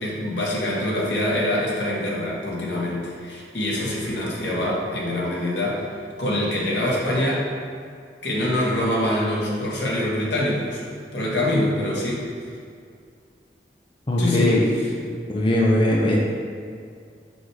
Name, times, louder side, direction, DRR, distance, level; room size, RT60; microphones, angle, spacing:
voice 1, 0.0-5.9 6.2-7.5 8.2-10.8 11.1-12.3 14.2-14.9, left 1 dB, 85° left, -4 dB, 1.6 m, -24 dB
voice 2, 14.1-14.7 15.3-16.2, left 1 dB, 30° left, -3 dB, 0.6 m, -20 dB
6.3 x 4.8 x 4.8 m, 2.2 s
head